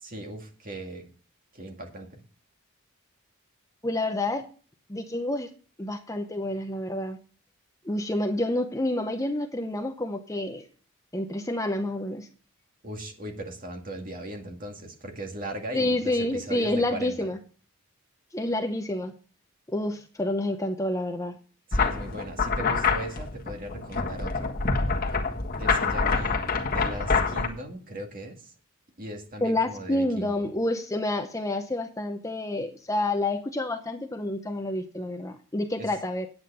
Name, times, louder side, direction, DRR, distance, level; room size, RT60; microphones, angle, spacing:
voice 1, 0.0-1.1 1.5-2.2 12.8-17.3 21.7-24.6 25.6-26.4 26.7-28.5 29.0-30.5 35.8-35.9, right 1 dB, 40° right, 3 dB, 2.1 m, -38 dB
voice 2, 3.8-4.4 4.9-5.5 5.8-7.2 7.8-10.7 11.1-12.3 15.7-17.4 18.3-19.1 19.7-21.4 29.4-36.3, left 1 dB, 15° left, 6 dB, 0.7 m, -28 dB
sound 1, 21.7-27.5, left 4 dB, 40° left, 1.6 m, -26 dB
9.5 x 8.8 x 5.5 m, 0.40 s
head